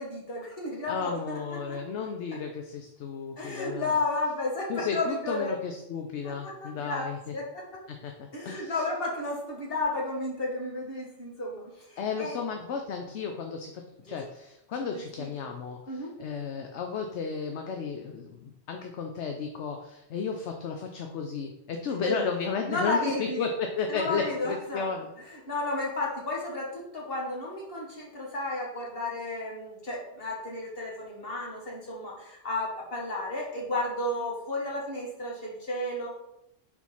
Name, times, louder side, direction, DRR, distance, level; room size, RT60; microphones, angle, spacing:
voice 1, 0.0-1.8 3.4-5.5 6.2-7.1 7.3-7.6 8.3-12.4 14.1-14.2 15.2-15.5 15.9-16.2 22.0-22.2 22.7-23.5 23.9-24.9 25.5-36.1, left 2 dB, 55° left, -2 dB, 1.9 m, -33 dB
voice 2, 0.9-3.9 4.7-7.3 7.9-8.8 12.0-25.1, left 5 dB, 75° left, 4 dB, 0.9 m, -33 dB
4.5 x 4.4 x 5.5 m, 0.84 s
omnidirectional pair, 1.2 m